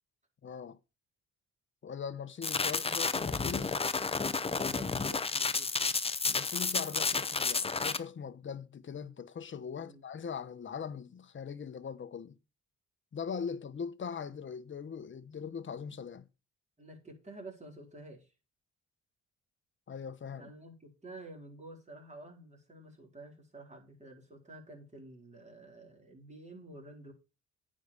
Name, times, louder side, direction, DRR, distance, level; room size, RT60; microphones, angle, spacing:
voice 1, 0.4-0.8 1.8-3.8 6.2-12.4 13.1-16.3 19.9-20.5, left 6 dB, 40° left, 1.1 m, -41 dB
sound 1, 2.4-8.0, left 4 dB, 20° left, 0.8 m, -31 dB
voice 2, 4.5-5.9 6.9-7.2 9.7-10.0 16.8-18.3 20.3-27.1, right 2 dB, 25° right, 4.2 m, -50 dB
9.3 x 5.1 x 7.0 m
cardioid pair, 90°, 30 cm